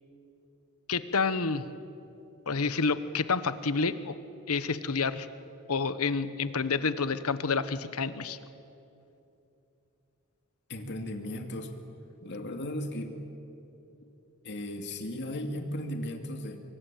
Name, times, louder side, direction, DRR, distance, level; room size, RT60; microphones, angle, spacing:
voice 1, 0.9-1.6 2.5-4.1 4.5-5.3 5.7-8.4, left 4 dB, 85° left, 13 dB, 1.1 m, -29 dB
voice 2, 10.7-11.7 12.2-13.2 14.4-16.6, left 1 dB, 55° left, 5 dB, 2.5 m, -36 dB
25.0 x 24.0 x 9.2 m, 2.8 s
head